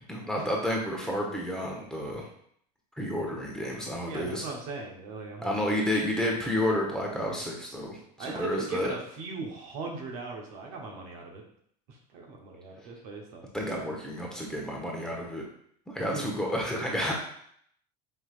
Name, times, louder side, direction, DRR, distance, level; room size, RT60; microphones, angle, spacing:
voice 1, 0.1-2.3 3.0-4.4 5.4-8.9 13.5-15.4 15.9-17.1, left 1 dB, 5° left, -2 dB, 1.1 m, -30 dB
voice 2, 4.0-5.5 8.2-11.4 11.9-13.4 16.1-16.4, right 3 dB, 65° right, 0 dB, 1.1 m, -38 dB
5.5 x 3.0 x 2.5 m, 0.66 s
hypercardioid pair, 85°, 21 cm